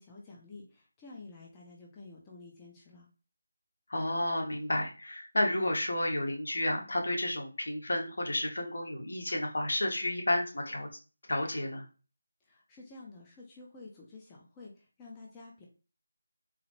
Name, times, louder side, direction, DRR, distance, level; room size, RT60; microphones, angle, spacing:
voice 1, 0.0-3.1 12.4-15.7, left 3 dB, 10° left, -3 dB, 0.5 m, -50 dB
voice 2, 3.9-10.9 11.3-11.8, left 1 dB, 70° left, 1 dB, 1.1 m, -31 dB
3.9 x 2.0 x 3.0 m, 0.33 s
figure-of-eight pair, 170°, 0 cm